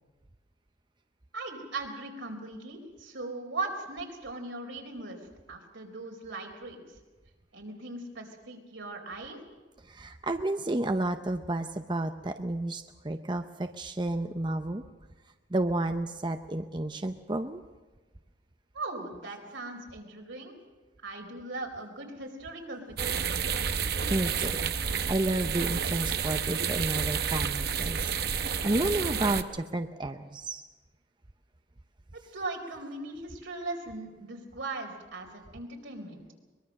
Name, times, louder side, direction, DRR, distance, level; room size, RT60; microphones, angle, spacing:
voice 1, 1.3-5.2 5.5-7.0 7.5-9.4 18.7-20.5 21.0-23.3 32.3-36.3, right 2 dB, 85° right, 2 dB, 4.1 m, -39 dB
voice 2, 9.9-14.8 15.5-17.6 23.8-28.0 28.6-30.6, right 2 dB, 25° right, 7 dB, 0.6 m, -31 dB
sound 1, 23.0-29.4, right 6 dB, 55° right, 0.9 m, -30 dB
23.0 x 21.5 x 6.4 m, 1.3 s
head